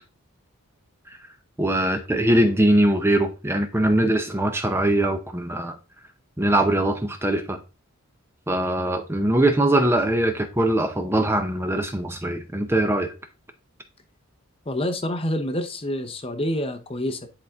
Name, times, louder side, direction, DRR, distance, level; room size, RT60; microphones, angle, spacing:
voice 1, 1.6-5.8 6.4-7.6 8.5-13.1, right 1 dB, 10° right, 0.6 m, -22 dB
voice 2, 14.7-17.3, left 1 dB, 25° left, 0.7 m, -27 dB
10.5 x 4.1 x 3.5 m
head